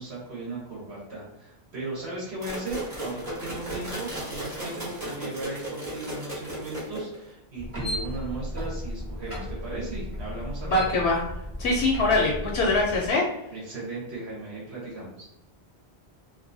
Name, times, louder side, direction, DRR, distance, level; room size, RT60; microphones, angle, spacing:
voice 1, 0.0-10.8 13.5-15.3, right 2 dB, 75° right, -6 dB, 1.3 m, -37 dB
sound 1, 2.4-7.3, right 1 dB, 30° right, 1.2 m, -35 dB
sound 2, 7.6-13.1, equal, 15° right, 0.7 m, -35 dB
voice 2, 10.6-11.2 11.6-13.2, left 2 dB, 75° left, -1 dB, 0.8 m, -23 dB
2.6 x 2.5 x 2.6 m, 0.87 s
omnidirectional pair, 1.1 m